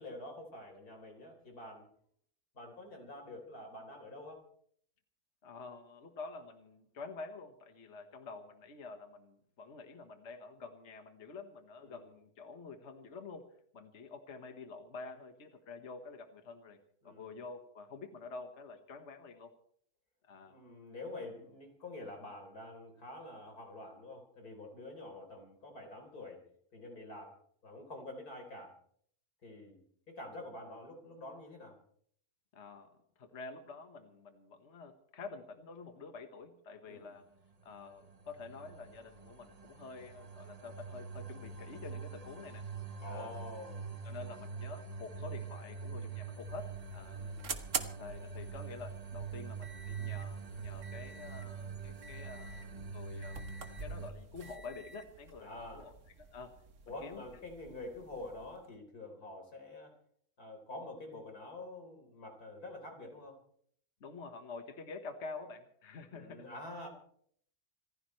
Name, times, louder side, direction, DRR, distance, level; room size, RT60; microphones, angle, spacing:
voice 1, 0.0-1.8 2.5-4.4 11.8-12.0 17.0-17.3 20.5-26.4 26.7-27.4 27.6-28.7 29.4-29.8 30.1-31.8 36.9-37.1 43.0-43.8 47.1-47.4 55.4-55.8 56.9-59.9 60.4-63.4 66.1-66.9, left 2 dB, 85° left, 3 dB, 4.5 m, -47 dB
voice 2, 5.4-13.5 13.7-16.8 17.0-19.5 20.2-20.6 32.5-32.9 33.2-37.2 37.6-42.6 43.1-43.5 44.0-47.3 48.0-53.4 53.8-56.5 57.0-57.2 64.0-66.5, left 4 dB, 50° left, 6 dB, 1.6 m, -48 dB
sound 1, 37.8-54.1, right 5 dB, 30° right, 0.9 m, -44 dB
sound 2, 46.2-58.7, right 5 dB, 55° right, 1.6 m, -47 dB
27.5 x 15.0 x 3.2 m, 0.62 s
omnidirectional pair, 1.6 m